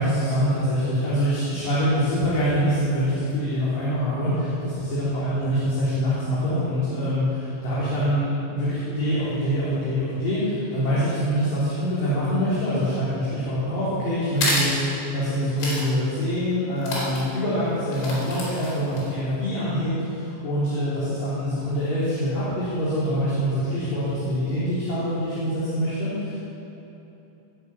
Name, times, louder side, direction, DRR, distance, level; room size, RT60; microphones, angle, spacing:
voice 1, 0.0-26.4, equal, 50° left, -11 dB, 4.9 m, -25 dB
sound 1, 14.4-14.7 15.6-15.9 16.2-16.3 16.8-17.2 17.9-19.1, left 1 dB, 80° left, 6.8 m, -27 dB
20.5 x 8.5 x 7.3 m, 3.0 s
omnidirectional pair, 5.5 m